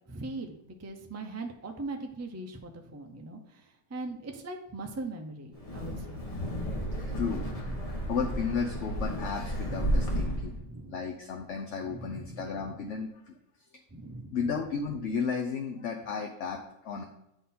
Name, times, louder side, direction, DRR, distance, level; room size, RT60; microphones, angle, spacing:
voice 1, 0.1-6.2 6.9-7.3 7.6-8.1 9.6-10.9 11.8-12.7 13.9-14.4, right 2 dB, 25° right, 4 dB, 0.3 m, -41 dB
Wind, 5.5-10.6, equal, 25° left, 1.1 m, -32 dB
voice 2, 7.0-7.6 8.0-10.5 10.9-13.3 14.3-17.0, left 5 dB, 60° left, 2 dB, 0.9 m, -33 dB
9.2 x 3.9 x 4.2 m, 0.83 s
omnidirectional pair, 1.6 m